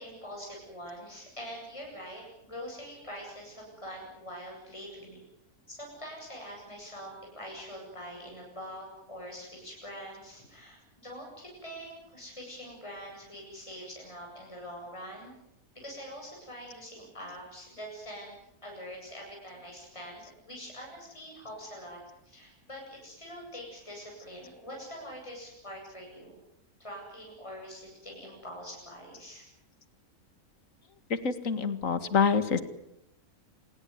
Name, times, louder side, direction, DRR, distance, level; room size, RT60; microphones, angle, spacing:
voice 1, 0.0-5.2 5.7-15.3 15.8-26.4 26.8-29.4, equal, 20° left, -1 dB, 7.9 m, -44 dB
voice 2, 31.1-32.6, left 6 dB, 60° left, 12 dB, 2.1 m, -26 dB
27.5 x 20.0 x 9.6 m, 0.83 s
omnidirectional pair, 1.6 m